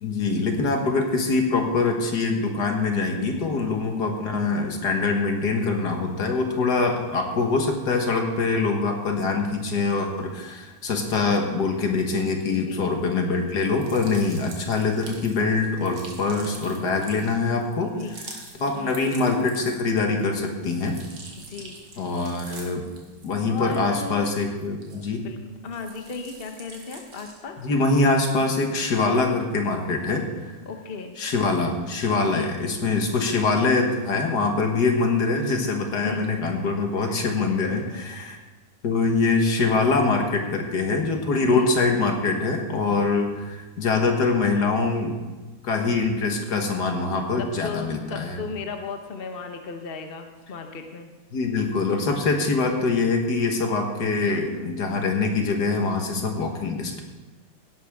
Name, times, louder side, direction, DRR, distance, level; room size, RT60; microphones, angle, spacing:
voice 1, 0.0-17.9 18.6-21.0 22.0-22.9 23.2-25.3 27.6-30.5 31.2-38.4 38.8-45.2 45.6-48.4 51.3-57.0, left 3 dB, 55° left, 3 dB, 1.9 m, -24 dB
voice 2, 3.3-3.6 12.5-12.9 17.8-18.2 18.7-19.0 21.4-21.8 23.5-24.3 25.2-25.4 25.6-27.6 30.7-31.2 32.3-32.5 35.9-36.3 37.0-37.2 37.4-37.8 38.1-38.4 41.4-41.8 43.0-43.1 47.4-51.1, left 5 dB, 40° left, 5 dB, 0.9 m, -36 dB
sound 1, 13.5-20.0 20.4-25.3 25.6-27.5, right 3 dB, 85° right, 2.8 m, -45 dB
17.0 x 11.5 x 3.6 m, 1.2 s
omnidirectional pair, 2.2 m